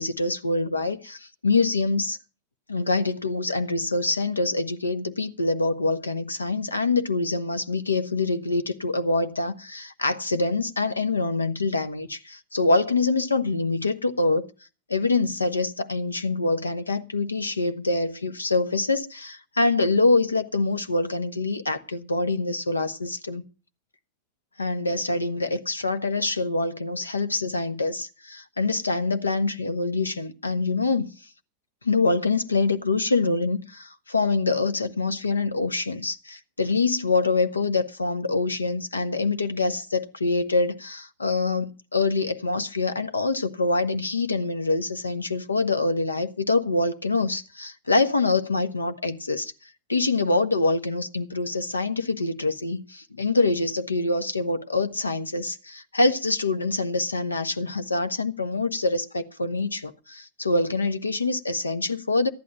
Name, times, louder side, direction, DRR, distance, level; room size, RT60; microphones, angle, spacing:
voice 1, 0.0-2.2 2.7-14.5 14.9-23.4 24.6-31.1 31.8-49.5 49.9-62.3, left 3 dB, 80° left, 1.3 m, -25 dB
14.5 x 11.0 x 5.5 m
figure-of-eight pair, 90°, 0 cm